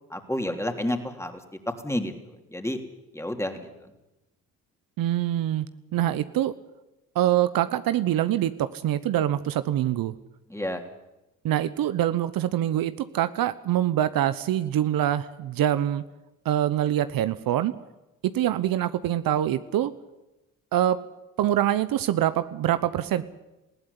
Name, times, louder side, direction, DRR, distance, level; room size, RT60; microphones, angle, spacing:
voice 1, 0.1-1.3 1.8-2.8 3.1-3.9 10.5-10.8, left 1 dB, 5° left, 5 dB, 3.3 m, -30 dB
voice 2, 5.0-5.7 5.9-6.5 7.1-10.1 11.4-16.0 16.4-17.7 18.3-19.9 20.7-21.0 21.4-23.2, right 12 dB, 70° right, 13 dB, 1.0 m, -24 dB
19.5 x 15.5 x 10.0 m, 0.99 s
supercardioid pair, 60°, 37 cm